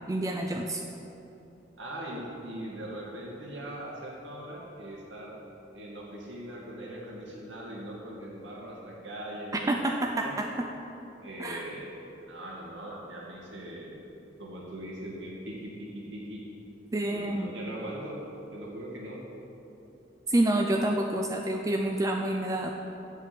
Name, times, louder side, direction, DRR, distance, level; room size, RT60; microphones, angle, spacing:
voice 1, 0.1-0.8 9.7-10.7 11.4-11.6 16.9-17.5 20.3-22.7, right 1 dB, 20° right, 2 dB, 0.4 m, -28 dB
voice 2, 1.8-5.3 5.7-10.4 11.2-11.9 12.2-13.9 14.4-16.4 17.1-18.2 18.5-19.2, right 1 dB, 90° right, -3 dB, 2.3 m, -40 dB
7.4 x 7.4 x 7.9 m, 3.0 s
head